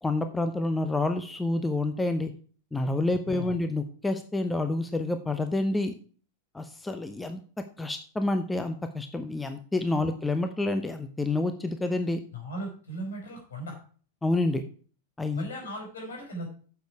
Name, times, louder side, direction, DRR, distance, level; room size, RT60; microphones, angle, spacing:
voice 1, 0.0-2.3 2.7-5.9 6.5-7.4 7.8-12.2 14.2-14.6 15.2-15.5, left 2 dB, 10° left, 8 dB, 0.7 m, -28 dB
voice 2, 12.3-13.8 15.3-16.5, right 1 dB, 65° left, 1 dB, 5.2 m, -37 dB
9.2 x 7.1 x 4.7 m, 0.41 s
figure-of-eight pair, 90°, 0 cm